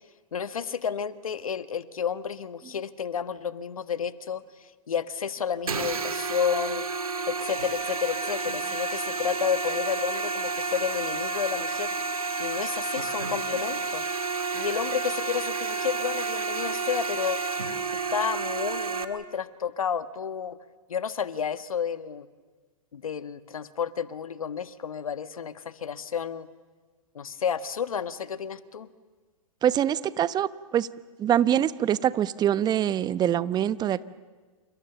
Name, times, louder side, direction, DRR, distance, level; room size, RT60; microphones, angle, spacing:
voice 1, 0.3-4.4 4.9-6.8 7.3-11.9 12.4-14.0 14.5-17.4 18.1-20.6 20.9-22.3 22.9-26.5 27.1-28.9, left 7 dB, 80° left, 11 dB, 1.4 m, -31 dB
sound 1, 5.7-19.0, right 4 dB, 85° right, 2.1 m, -30 dB
voice 2, 29.6-30.9 31.2-34.0, right 10 dB, 25° right, 15 dB, 0.9 m, -24 dB
29.0 x 28.0 x 7.0 m, 1.4 s
hypercardioid pair, 110°, 18 cm